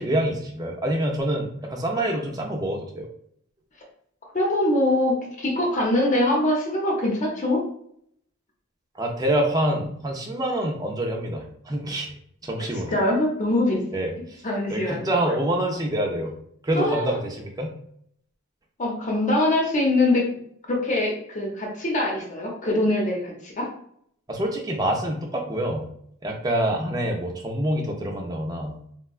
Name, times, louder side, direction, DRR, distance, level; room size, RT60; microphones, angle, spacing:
voice 1, 0.0-3.1 9.0-12.1 12.4-12.9 13.9-14.4 14.7-16.4 16.6-17.7 24.3-25.9 26.2-28.8, right 1 dB, 20° right, 1 dB, 0.4 m, -26 dB
voice 2, 4.3-7.6 12.9-13.8 14.0-15.3 16.7-17.1 18.8-20.4 20.7-23.7, left 1 dB, 40° left, 0 dB, 0.7 m, -23 dB
3.5 x 2.2 x 2.3 m, 0.68 s
head